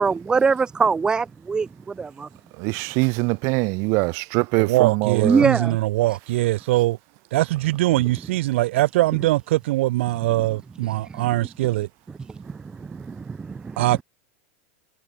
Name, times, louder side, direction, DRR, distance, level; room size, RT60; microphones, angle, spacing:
voice 1, 0.0-2.3 5.2-5.8 11.1-11.3 12.3-13.8, right 5 dB, 10° right, 2.3 m, -23 dB
voice 2, 2.5-5.5, right 30 dB, 45° right, 4.1 m, -23 dB
voice 3, 4.6-7.0 7.3-11.9 13.8-14.0, right 17 dB, 65° right, 1.9 m, -22 dB
supercardioid pair, 160°, 7 cm